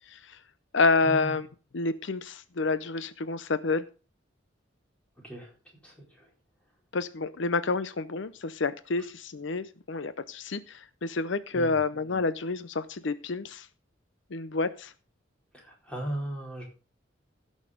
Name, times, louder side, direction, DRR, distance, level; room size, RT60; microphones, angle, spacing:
voice 1, 0.1-0.4 0.7-1.5 1.7-3.8 6.9-13.7 14.3-14.9, left 3 dB, 70° left, 14 dB, 0.6 m, -29 dB
voice 2, 5.8-6.2 11.5-11.8 15.5-16.6, right 1 dB, 5° left, -2 dB, 4.3 m, -37 dB
16.5 x 6.5 x 5.0 m, 0.35 s
head